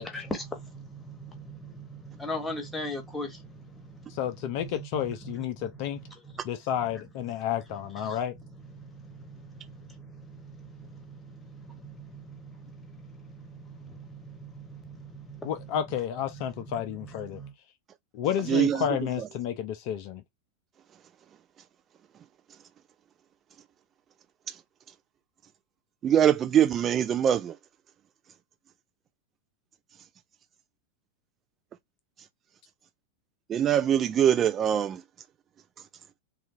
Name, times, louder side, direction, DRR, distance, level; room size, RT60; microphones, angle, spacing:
voice 1, 0.0-6.5 6.9-7.3 8.0-15.8 16.3-17.5, equal, 10° left, 1.1 m, -41 dB
voice 2, 4.1-6.0 6.4-8.4 15.4-17.4 18.1-20.2, left 9 dB, 45° left, 0.4 m, -31 dB
voice 3, 18.5-18.8 26.0-27.5 33.5-35.0, right 9 dB, 25° right, 0.3 m, -23 dB
3.4 x 2.3 x 2.7 m
figure-of-eight pair, 90°, 0 cm